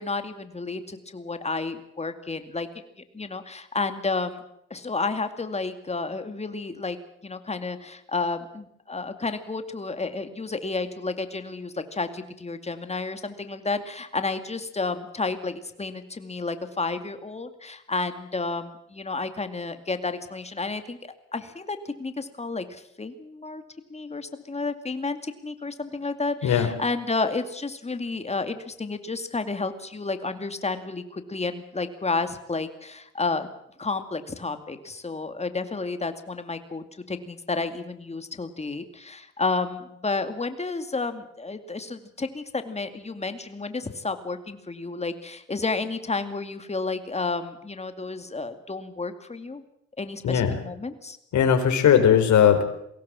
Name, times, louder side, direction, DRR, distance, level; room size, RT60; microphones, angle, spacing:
voice 1, 0.0-2.7 3.1-4.4 4.7-7.0 7.2-23.6 23.9-33.5 33.8-49.6 50.0-51.2, left 3 dB, 20° left, 9 dB, 2.3 m, -31 dB
voice 2, 51.3-52.6, left 8 dB, 70° left, 6 dB, 4.3 m, -18 dB
22.5 x 17.5 x 7.6 m, 0.76 s
cardioid pair, 90°, 30 cm